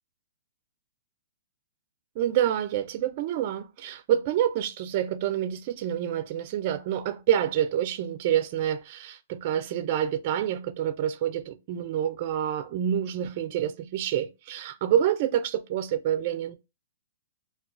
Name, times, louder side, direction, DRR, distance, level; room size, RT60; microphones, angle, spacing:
voice 1, 2.2-16.5, right 10 dB, 40° right, 0.4 m, -27 dB
2.3 x 2.2 x 3.6 m
hypercardioid pair, 155°, 0 cm